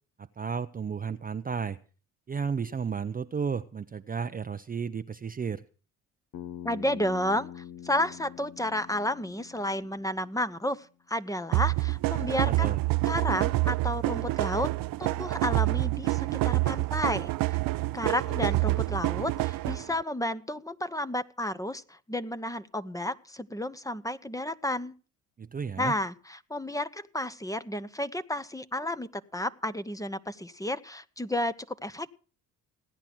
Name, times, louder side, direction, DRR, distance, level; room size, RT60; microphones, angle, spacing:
voice 1, 0.2-1.8 2.3-5.6 12.4-12.8 25.4-25.9, right 6 dB, 25° right, 11 dB, 0.6 m, -33 dB
Bass guitar, 6.3-10.6, left 10 dB, 65° left, 1.2 m, -45 dB
voice 2, 6.6-12.7 13.1-14.7 15.0-17.6 17.9-24.9 25.8-32.1, left 1 dB, 10° left, 13 dB, 1.0 m, -32 dB
sound 1, 11.5-20.0, right 19 dB, 65° right, 0.7 m, -27 dB
16.5 x 10.0 x 6.0 m, 0.39 s
hypercardioid pair, 60°, 37 cm